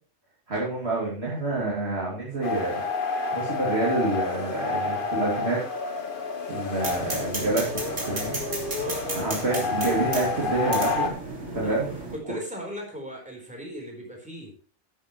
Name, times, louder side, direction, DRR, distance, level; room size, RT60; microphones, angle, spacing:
voice 1, 0.5-2.8 3.3-5.6 6.5-8.4 9.1-11.1 11.5-11.9 12.3-12.4, right 2 dB, 55° right, -5 dB, 3.1 m, -28 dB
sound 1, 2.4-11.1, left 4 dB, 45° left, 1.7 m, -30 dB
sound 2, 6.8-12.2, right 2 dB, 75° right, 3.8 m, -34 dB
voice 2, 8.7-9.3 11.6-11.7 12.1-14.5, equal, 5° right, 0 dB, 4.1 m, -38 dB
12.0 x 10.5 x 3.2 m, 0.41 s
omnidirectional pair, 1.3 m